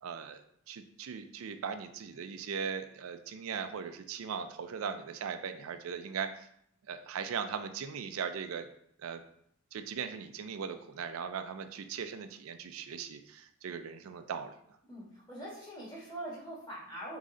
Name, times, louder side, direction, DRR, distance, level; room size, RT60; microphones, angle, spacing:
voice 1, 0.0-0.4 0.7-6.5 6.9-8.7 9.0-9.2 9.7-14.5, right 6 dB, 90° right, 8 dB, 0.4 m, -39 dB
voice 2, 14.9-17.2, right 1 dB, 20° left, -5 dB, 1.3 m, -43 dB
3.8 x 3.1 x 3.7 m, 0.71 s
head